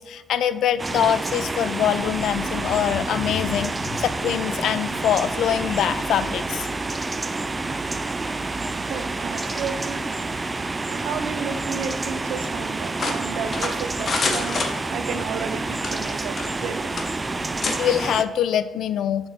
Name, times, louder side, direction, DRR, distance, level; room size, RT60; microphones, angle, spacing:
voice 1, 0.0-6.7 17.8-19.3, left 9 dB, 75° left, 0.4 m, -24 dB
sound 1, 0.8-18.2, right 3 dB, 25° right, 0.4 m, -28 dB
voice 2, 8.7-10.1 10.6-17.0, right 6 dB, 80° right, 0.7 m, -33 dB
sound 2, 13.0-15.2 15.8-16.7 17.0-17.1 17.6-17.8, left 3 dB, 45° left, 1.0 m, -27 dB
6.4 x 6.2 x 3.6 m
cardioid pair, 90°, 0 cm